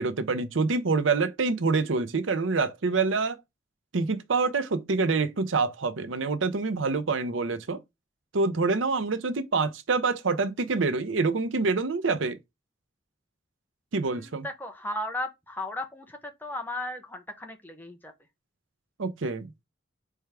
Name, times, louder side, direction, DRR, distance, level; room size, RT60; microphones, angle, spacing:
voice 1, 0.0-3.4 3.9-7.8 8.3-12.4 13.9-14.4 19.0-19.5, right 4 dB, 85° right, 0.7 m, -26 dB
voice 2, 14.0-18.1, left 1 dB, 10° left, 0.7 m, -36 dB
4.5 x 3.5 x 3.3 m
head